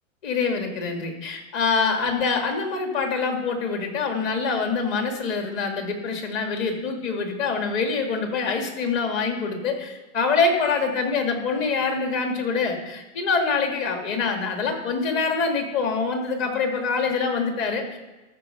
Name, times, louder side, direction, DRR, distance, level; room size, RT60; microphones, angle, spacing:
voice 1, 0.2-18.0, left 4 dB, 30° left, 3 dB, 1.8 m, -25 dB
13.0 x 4.4 x 6.5 m, 1.1 s
supercardioid pair, 160°, 37 cm